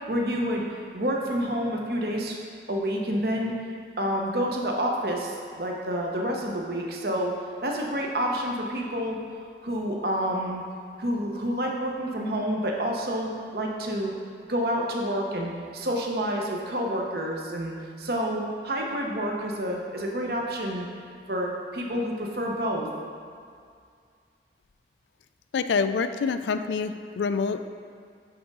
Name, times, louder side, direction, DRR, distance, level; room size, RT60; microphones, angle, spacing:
voice 1, 0.1-0.6 0.9-2.4 2.7-3.6 4.0-7.3 7.6-9.2 9.6-10.6 11.0-14.1 14.5-20.9 21.3-22.9, equal, 55° right, -1 dB, 0.9 m, -28 dB
voice 2, 25.5-27.7, left 5 dB, 75° left, 10 dB, 0.4 m, -26 dB
9.5 x 3.6 x 5.3 m, 2.2 s
head